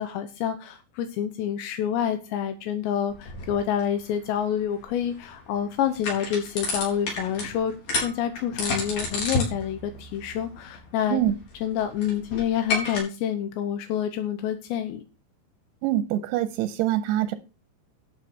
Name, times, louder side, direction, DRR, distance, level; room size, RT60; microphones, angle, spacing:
voice 1, 0.0-11.2 11.6-15.0, left 9 dB, 80° left, 3.1 m, -28 dB
sound 1, 3.1-13.0, left 2 dB, 60° left, 5.8 m, -33 dB
voice 2, 15.8-17.4, right 13 dB, 80° right, 2.7 m, -24 dB
12.0 x 7.7 x 4.6 m
omnidirectional pair, 5.1 m